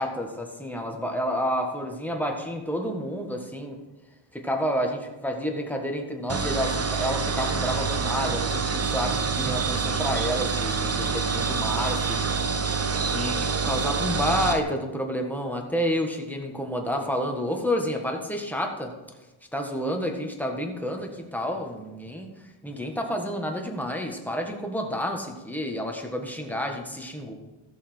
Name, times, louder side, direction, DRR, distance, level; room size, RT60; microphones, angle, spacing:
voice 1, 0.0-3.8 4.3-12.2 13.1-18.9 19.5-22.3 22.6-27.3, equal, 5° left, 2 dB, 1.6 m, -29 dB
sound 1, 6.3-14.6, right 5 dB, 30° right, 0.8 m, -26 dB
14.0 x 7.0 x 4.5 m, 1.1 s
cardioid pair, 100°, 49 cm